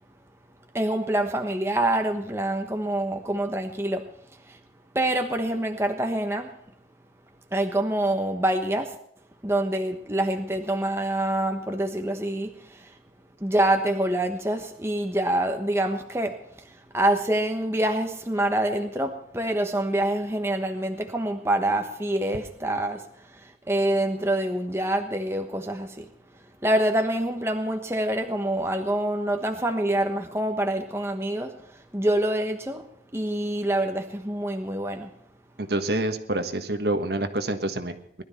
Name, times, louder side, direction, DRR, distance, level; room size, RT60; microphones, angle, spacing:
voice 1, 0.7-4.0 4.4-4.6 4.9-6.5 7.5-9.0 9.4-12.9 13.4-26.1 26.6-32.8 33.1-35.1, right 1 dB, 15° right, 4 dB, 1.2 m, -26 dB
voice 2, 35.6-38.2, right 1 dB, 65° right, 7 dB, 1.5 m, -27 dB
19.5 x 12.5 x 4.3 m, 0.70 s
head